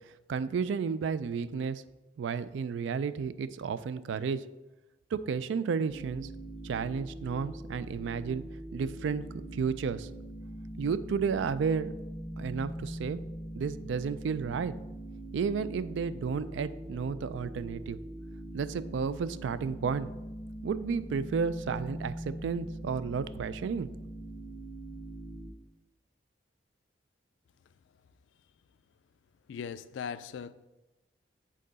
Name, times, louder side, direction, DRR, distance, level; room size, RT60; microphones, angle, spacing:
voice 1, 0.3-1.8 2.2-4.4 5.1-6.3 6.6-8.4 8.7-9.2 9.5-10.1 10.8-11.9 12.4-13.2 13.5-14.7 15.3-18.0 18.5-20.1 20.6-23.9, right 6 dB, 75° right, 0.3 m, -32 dB
sound 1, 5.9-25.5, right 1 dB, 30° right, 0.9 m, -42 dB
voice 2, 29.5-30.5, left 7 dB, 75° left, 0.3 m, -39 dB
7.5 x 3.8 x 4.0 m
head